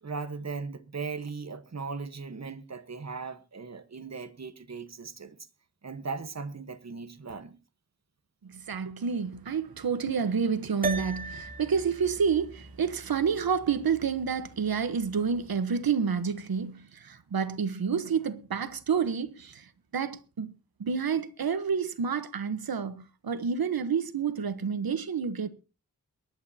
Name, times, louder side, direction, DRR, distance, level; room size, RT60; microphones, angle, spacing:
voice 1, 0.0-5.4 5.8-7.6, right 4 dB, 50° right, 1.3 m, -38 dB
voice 2, 8.4-20.5 20.8-25.5, right 6 dB, 85° right, 1.1 m, -29 dB
sound 1, 10.8-15.4, right 2 dB, 25° right, 2.4 m, -39 dB
22.5 x 11.0 x 2.8 m
wide cardioid pair, 85°, 35 cm